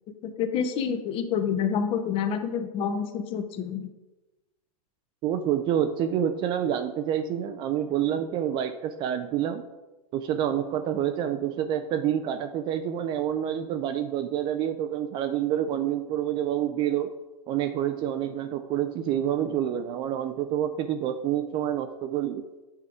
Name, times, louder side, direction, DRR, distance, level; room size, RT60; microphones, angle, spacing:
voice 1, 0.2-3.9, left 7 dB, 30° left, 8 dB, 0.7 m, -28 dB
voice 2, 5.2-9.6 10.1-17.1 17.5-22.4, right 10 dB, 25° right, 8 dB, 0.3 m, -28 dB
8.2 x 3.5 x 4.9 m, 1.1 s
hypercardioid pair, 125°, 19 cm